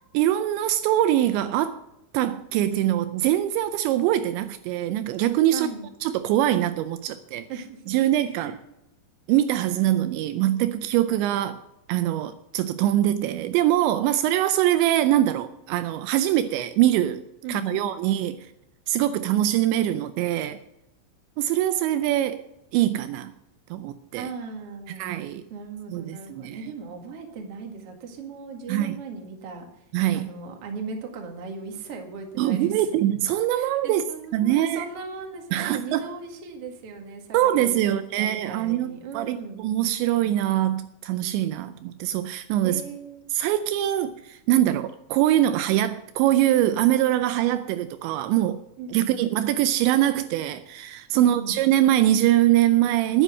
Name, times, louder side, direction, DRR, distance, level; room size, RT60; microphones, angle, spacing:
voice 1, 0.1-1.8 2.1-5.7 6.0-7.5 7.9-8.6 9.3-11.6 11.9-17.2 17.5-18.5 18.9-20.6 21.4-22.4 22.7-23.3 23.7-24.3 24.9-25.4 25.9-26.6 28.7-29.0 29.9-30.3 32.4-34.0 34.3-34.9 35.5-36.1 37.3-42.8 43.3-48.6 48.9-53.2, right 13 dB, 85° right, 2.8 m, -23 dB
voice 2, 5.5-5.9 7.5-8.0 8.2-8.5 17.4-17.8 24.1-25.1 25.5-29.8 30.1-32.9 33.5-39.6 42.6-43.3 48.8-49.2 51.1-51.6, right 4 dB, 50° right, 1.9 m, -38 dB
10.0 x 10.0 x 7.5 m
omnidirectional pair, 5.4 m